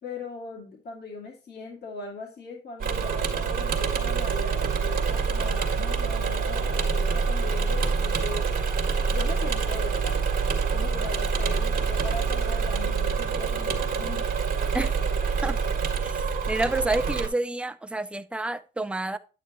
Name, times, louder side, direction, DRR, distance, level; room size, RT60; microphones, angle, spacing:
voice 1, 0.0-8.5 9.1-10.2 10.7-14.2, left 3 dB, 55° left, 2.2 m, -39 dB
Engine / Mechanisms, 2.8-17.3, right 5 dB, 45° right, 1.5 m, -26 dB
voice 2, 16.0-19.2, right 2 dB, 5° right, 0.5 m, -29 dB
8.9 x 8.3 x 3.0 m
cardioid pair, 90°, 20 cm